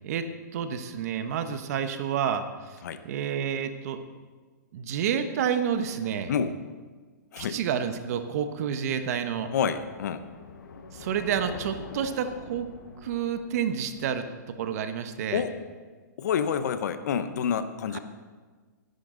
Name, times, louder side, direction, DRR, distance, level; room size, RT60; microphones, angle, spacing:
voice 1, 0.5-2.4 3.0-4.0 4.7-6.3 7.4-9.5 10.9-12.7 13.0-14.2 14.6-15.4 17.9-18.0, right 8 dB, 55° right, 9 dB, 1.2 m, -29 dB
sound 1, 8.0-15.1, left 4 dB, 80° left, 1.5 m, -46 dB
voice 2, 9.5-10.2 15.3-15.5 16.2-18.0, left 7 dB, 65° left, 11 dB, 1.0 m, -28 dB
18.0 x 11.0 x 3.9 m, 1.4 s
hypercardioid pair, 130°, 10 cm